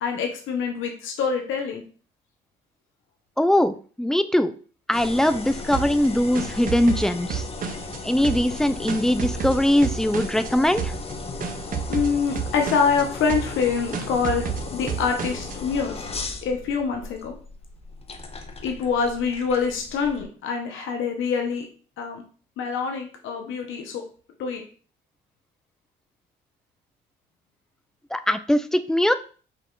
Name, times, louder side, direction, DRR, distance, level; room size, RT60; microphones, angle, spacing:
voice 1, 0.0-1.8 11.9-16.1 16.4-17.3 18.6-21.6 22.0-22.2 22.6-24.0 24.4-24.6, left 5 dB, 80° left, 3 dB, 0.9 m, -25 dB
voice 2, 3.4-4.5 4.9-7.5 8.0-10.9 28.1-29.1, left 1 dB, 5° left, 11 dB, 0.3 m, -21 dB
sound 1, 4.9-20.2, left 3 dB, 30° left, 0.7 m, -36 dB
sound 2, 5.7-8.0 8.2-10.5 10.8-11.1 11.4-13.0 13.3-13.7 13.9-15.5, right 7 dB, 45° right, 0.6 m, -31 dB
5.7 x 2.4 x 3.6 m, 0.40 s
cardioid pair, 90°, 20 cm